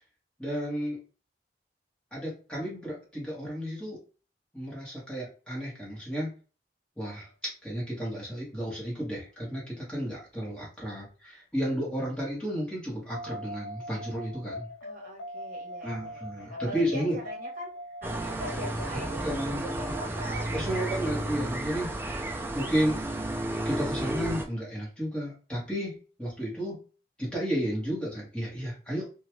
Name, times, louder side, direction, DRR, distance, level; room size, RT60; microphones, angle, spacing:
voice 1, 0.4-1.0 2.1-4.0 4.5-6.3 7.0-7.3 7.6-14.7 15.8-17.2 19.2-19.9 20.5-21.9 22.5-23.0 23.6-26.8 27.2-29.1, equal, 5° left, -5 dB, 1.4 m, -32 dB
sound 1, 13.1-23.3, left 1 dB, 75° left, 0.5 m, -43 dB
voice 2, 14.8-17.7 18.0-19.4 19.8-20.9, right 1 dB, 50° right, -1 dB, 1.0 m, -42 dB
sound 2, 18.0-24.5, right 1 dB, 15° right, 0.3 m, -32 dB
2.9 x 2.3 x 3.0 m, 0.36 s
head